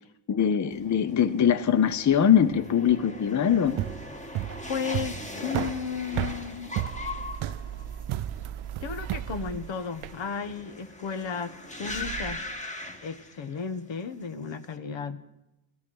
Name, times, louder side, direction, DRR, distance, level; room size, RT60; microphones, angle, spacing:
voice 1, 0.3-3.8, left 8 dB, 40° left, 0.6 m, -22 dB
sound 1, 0.7-13.8 14.1-14.7, left 2 dB, 15° left, 1.5 m, -41 dB
sound 2, 3.7-10.2, right 14 dB, 75° right, 0.5 m, -33 dB
voice 2, 4.7-6.8 8.8-12.4 13.0-15.2, left 6 dB, 65° left, 1.1 m, -34 dB
sound 3, 6.8-9.9 11.9-12.7, right 8 dB, 50° right, 0.9 m, -39 dB
15.5 x 14.0 x 6.2 m
wide cardioid pair, 125°, 49 cm